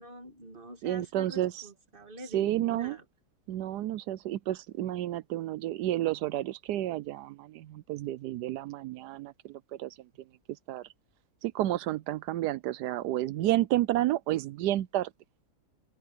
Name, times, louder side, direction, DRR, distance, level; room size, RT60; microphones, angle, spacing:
voice 1, 0.0-3.0, right 1 dB, 35° right, 2.0 m, -45 dB
voice 2, 0.8-1.6 2.3-3.0 3.5-10.0 10.7-10.9 11.4-15.1, right 14 dB, 85° right, 1.2 m, -31 dB
omnidirectional pair, 1.7 m